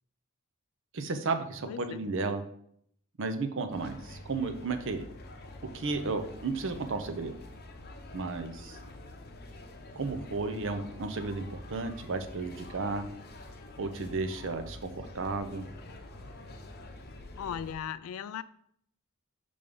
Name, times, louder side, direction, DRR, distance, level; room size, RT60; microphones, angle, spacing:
voice 1, 0.9-2.4 3.2-5.0 5.7-7.3 8.1-8.8 9.9-13.0 13.8-15.6, right 3 dB, 60° right, 8 dB, 0.6 m, -33 dB
voice 2, 1.7-2.1 17.4-18.4, left 8 dB, 75° left, 16 dB, 0.3 m, -37 dB
sound 1, 3.7-17.7, left 2 dB, 45° left, 0.7 m, -47 dB
5.2 x 3.4 x 5.3 m, 0.68 s
head